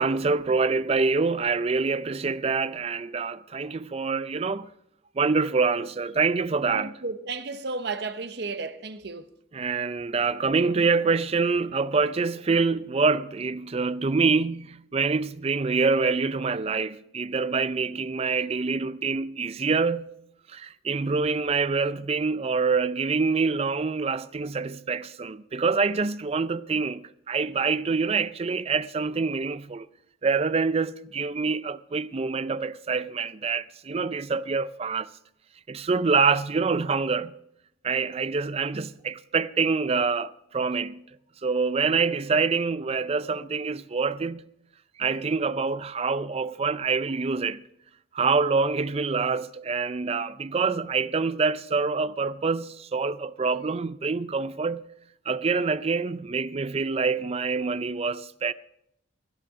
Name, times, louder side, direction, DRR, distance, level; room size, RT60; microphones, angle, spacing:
voice 1, 0.0-4.7 5.2-6.9 9.5-20.1 20.5-29.9 30.2-35.1 35.7-37.3 37.8-41.0 41.4-44.5 45.0-47.6 48.1-54.8 55.3-58.5, right 4 dB, 30° right, 0.4 m, -26 dB
voice 2, 6.7-9.3, right 4 dB, 60° right, 0.9 m, -33 dB
17.0 x 13.0 x 3.7 m
head